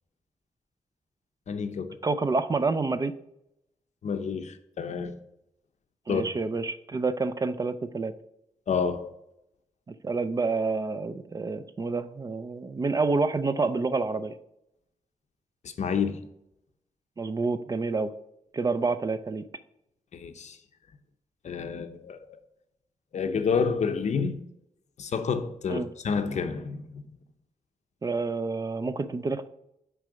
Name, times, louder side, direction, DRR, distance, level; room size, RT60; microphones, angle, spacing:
voice 1, 1.5-2.0 4.0-5.1 6.1-6.2 8.7-9.1 15.8-16.2 20.1-20.6 21.4-22.2 23.1-24.5 25.0-27.0, left 5 dB, 60° left, 0.7 m, -29 dB
voice 2, 2.0-3.1 6.1-8.1 10.0-14.3 17.2-18.1 18.5-19.4 25.7-25.9 28.0-29.5, right 3 dB, 30° right, 0.3 m, -28 dB
6.2 x 4.7 x 5.0 m
wide cardioid pair, 175°, 13 cm